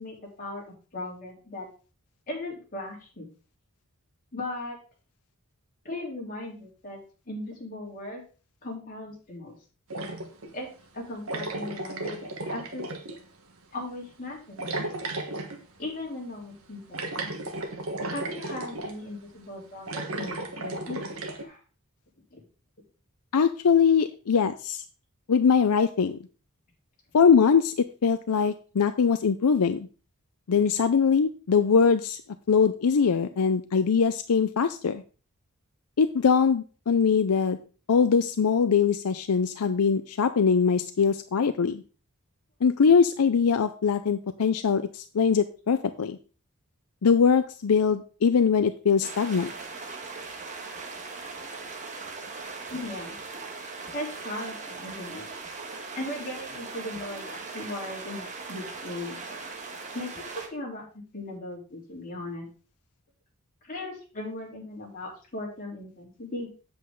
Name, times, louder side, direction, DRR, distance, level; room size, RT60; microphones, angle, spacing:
voice 1, 0.0-1.7 2.3-3.3 4.3-4.8 5.8-7.0 7.3-8.2 8.6-9.5 10.5-10.7 10.9-12.8 13.7-14.7 15.8-17.0 18.1-21.0 21.4-21.6 22.3-22.4 52.7-53.2 53.9-55.3 55.9-59.2 59.9-60.9 61.1-62.5 63.6-66.5, left 1 dB, 40° left, -2 dB, 3.6 m, -37 dB
sound 1, 9.9-10.5 11.3-13.2 14.6-15.6 16.9-19.0 19.8-21.4, right 2 dB, 65° right, 1.4 m, -34 dB
voice 2, 23.3-24.8 25.3-26.2 27.1-29.9 30.5-32.2 32.5-35.0 36.0-37.6 37.9-41.8 42.6-46.2 47.0-49.5, left 6 dB, 80° left, 10 dB, 0.5 m, -22 dB
sound 2, 49.0-60.5, right 4 dB, 35° right, 1.5 m, -39 dB
8.2 x 7.8 x 3.8 m, 0.36 s
head